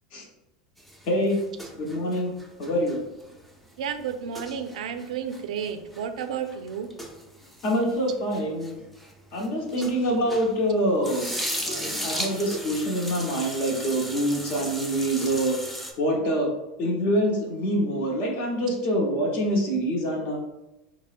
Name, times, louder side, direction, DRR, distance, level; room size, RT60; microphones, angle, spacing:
sound 1, 0.8-10.6 10.9-15.9, equal, ahead, 0.4 m, -36 dB
voice 1, 1.0-1.4 1.7-2.3 2.6-3.0 7.6-8.8 9.3-15.6 16.0-16.5 16.8-20.4, equal, 50° left, 0 dB, 0.9 m, -25 dB
voice 2, 3.8-6.9, right 7 dB, 85° right, 8 dB, 0.3 m, -32 dB
3.7 x 2.0 x 2.5 m, 0.98 s
supercardioid pair, 120°, 4 cm